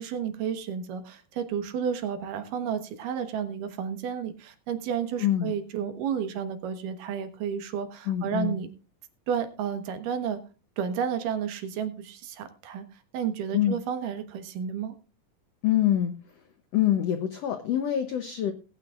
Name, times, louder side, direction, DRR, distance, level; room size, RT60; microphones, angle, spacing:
voice 1, 0.0-8.7 9.3-10.4 10.8-12.9 13.1-14.9, right 8 dB, 70° right, 8 dB, 2.7 m, -31 dB
voice 2, 5.2-5.5 8.1-8.6 13.5-13.8 15.6-16.1 16.7-18.5, left 11 dB, 90° left, 8 dB, 1.4 m, -25 dB
19.5 x 8.9 x 2.4 m, 0.33 s
omnidirectional pair, 4.0 m